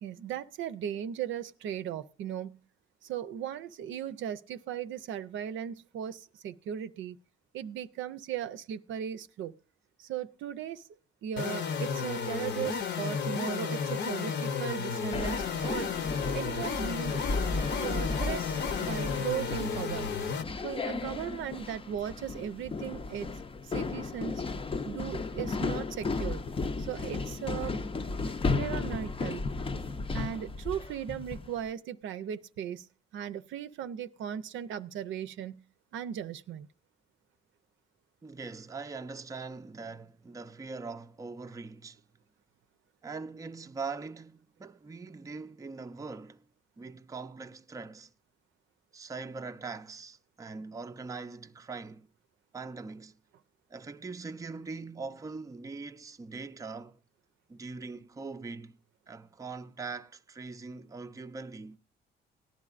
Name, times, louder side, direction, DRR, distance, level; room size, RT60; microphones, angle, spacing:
voice 1, 0.0-2.6 3.0-7.2 7.5-9.5 10.0-10.8 11.2-15.9 16.3-17.2 17.8-18.5 18.8-20.1 20.6-23.3 23.7-24.4 24.8-26.4 26.8-27.8 28.5-29.4 30.1-32.9 33.1-35.6 35.9-36.7, right 9 dB, 75° right, 0.6 m, -37 dB
sound 1, 11.4-20.4, left 6 dB, 60° left, 0.8 m, -33 dB
sound 2, 15.1-31.6, left 3 dB, 25° left, 0.6 m, -34 dB
voice 2, 38.2-42.0 43.0-46.4 46.8-48.1 48.9-52.1 52.5-53.1 53.7-57.0 57.5-58.8 59.1-61.8, right 4 dB, 15° right, 0.5 m, -42 dB
18.0 x 11.0 x 2.5 m
cardioid pair, 90°, 20 cm